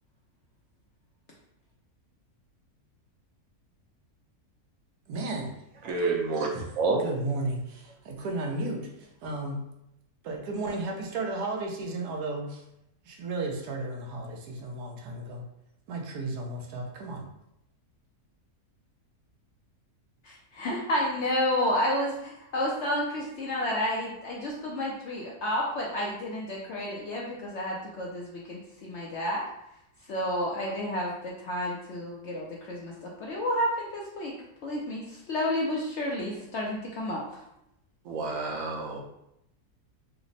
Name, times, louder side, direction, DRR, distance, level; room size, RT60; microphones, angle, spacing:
voice 1, 5.1-5.5 6.5-6.7 7.0-9.6 10.2-12.6 13.0-15.4 15.9-17.3, right 2 dB, 85° right, 1 dB, 1.2 m, -34 dB
voice 2, 5.8-6.5 6.8-7.0 38.0-39.0, right 3 dB, 65° right, 0 dB, 1.0 m, -28 dB
voice 3, 20.2-29.5 30.1-34.3 34.6-37.4, left 1 dB, 65° left, -3 dB, 0.7 m, -31 dB
3.3 x 2.0 x 3.8 m, 0.82 s
omnidirectional pair, 1.6 m